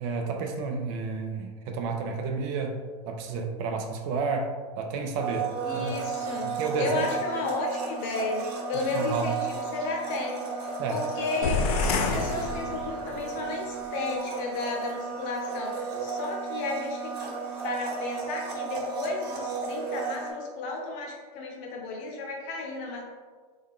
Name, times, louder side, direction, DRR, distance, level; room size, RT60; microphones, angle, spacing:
voice 1, 0.0-2.8 3.1-5.9 6.4-7.0 8.7-9.4 10.8-11.0, right 4 dB, 50° right, 3 dB, 0.5 m, -31 dB
Domestic sounds home sounds, 5.2-20.3, right 5 dB, 85° right, 1.0 m, -34 dB
voice 2, 5.6-6.5 6.8-8.4 8.7-17.4 17.6-23.0, left 3 dB, 50° left, 0 dB, 0.9 m, -33 dB
sound 1, 11.4-13.3, left 4 dB, 75° left, 0.4 m, -28 dB
3.5 x 2.2 x 3.6 m, 1.5 s
supercardioid pair, 130°, 20 cm